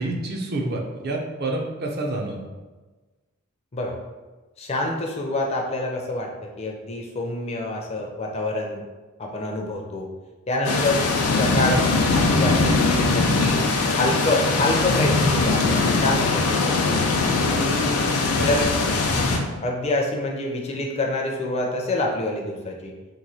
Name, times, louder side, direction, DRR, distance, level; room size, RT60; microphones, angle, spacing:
voice 1, 0.0-2.4 17.4-17.5 18.4-18.5, right 2 dB, 45° right, 1 dB, 0.4 m, -28 dB
voice 2, 4.6-8.8 9.2-10.1 10.5-11.1 11.4-11.9 12.1-13.6 13.9-17.0 17.5-18.7 19.6-22.9, left 2 dB, 30° left, 1 dB, 0.4 m, -26 dB
sound 1, 10.6-19.4, left 3 dB, 85° left, 0.5 m, -21 dB
3.0 x 2.2 x 4.0 m, 1.2 s
head